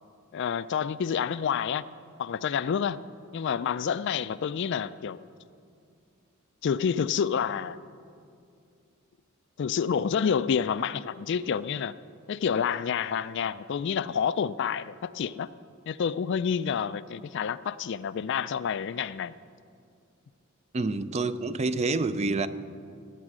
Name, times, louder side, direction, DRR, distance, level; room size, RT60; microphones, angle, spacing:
voice 1, 0.3-1.8 2.2-3.0 3.3-5.2 6.6-7.8 9.6-11.9 12.3-15.5 15.9-19.3, left 7 dB, 60° left, 0.4 m, -28 dB
voice 2, 20.7-22.5, right 3 dB, 30° right, 0.4 m, -27 dB
18.0 x 8.4 x 6.1 m
head